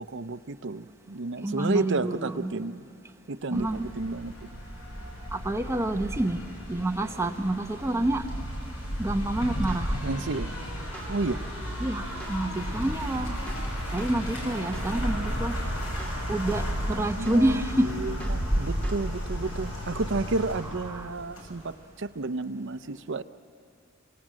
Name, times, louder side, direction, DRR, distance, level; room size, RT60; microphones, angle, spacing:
voice 1, 0.0-2.9 3.3-4.3 10.0-10.6 11.1-11.4 17.0-17.5 17.8-23.2, right 3 dB, 55° right, 10 dB, 0.7 m, -31 dB
voice 2, 1.4-2.5 3.5-3.9 5.3-6.4 6.7-8.3 9.0-10.0 11.8-13.5 13.9-15.6 16.3-17.9 20.9-21.1, right 1 dB, 15° right, 5 dB, 0.8 m, -28 dB
sound 1, 3.5-21.7, equal, 80° left, 6.3 m, -33 dB
sound 2, 9.0-9.3 9.7-9.9 10.2-11.8 12.2-12.4 12.7-14.3 14.7-14.9 15.2-16.8 17.3-17.4 17.8-19.0, right 1 dB, 5° left, 2.5 m, -40 dB
26.5 x 24.5 x 7.6 m, 2.6 s
head